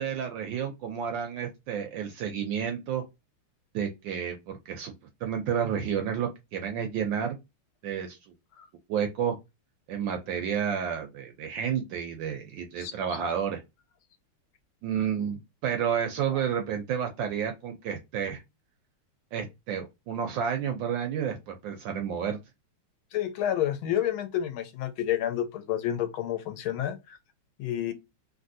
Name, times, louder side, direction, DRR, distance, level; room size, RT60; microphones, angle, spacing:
voice 1, 0.0-3.0 3.7-4.9 5.2-7.4 7.8-8.2 8.9-9.4 9.9-13.6 14.8-18.4 19.3-22.4, right 8 dB, 75° right, 1.1 m, -30 dB
voice 2, 12.8-13.2 15.0-15.1 23.1-27.2 27.6-27.9, left 11 dB, 75° left, 1.4 m, -30 dB
3.3 x 2.6 x 2.6 m
omnidirectional pair, 2.4 m